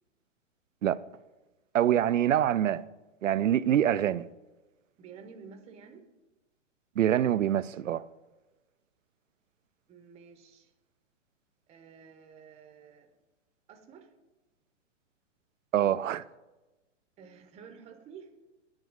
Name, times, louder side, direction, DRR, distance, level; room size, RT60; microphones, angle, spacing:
voice 1, 1.7-2.8 3.2-4.2 7.0-8.0 15.7-16.3, right 11 dB, 85° right, 0.6 m, -25 dB
voice 2, 5.0-6.1 9.9-10.7 11.7-13.1 13.7-14.1 17.2-18.3, right 6 dB, 15° right, 0.8 m, -51 dB
9.7 x 4.8 x 7.7 m
hypercardioid pair, 130°, 37 cm